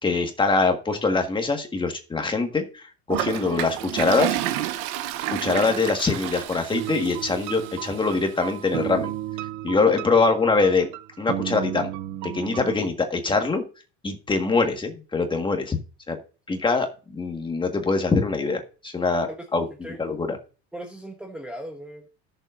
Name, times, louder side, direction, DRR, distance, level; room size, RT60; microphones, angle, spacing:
voice 1, 0.0-4.4 5.3-9.1 9.6-10.9 11.2-11.9 12.2-13.6 14.0-15.8 16.1-16.2 16.5-19.6 20.0-20.4, left 4 dB, 15° left, 5 dB, 1.6 m, -23 dB
Toilet flush, 3.1-8.1, right 13 dB, 80° right, 1.0 m, -30 dB
sound 1, 6.7-12.8, right 14 dB, 65° right, 0.7 m, -34 dB
voice 2, 19.4-20.0 20.7-22.1, right 1 dB, 5° right, 3 dB, 1.1 m, -38 dB
17.0 x 7.1 x 2.6 m, 0.34 s
cardioid pair, 140°, 32 cm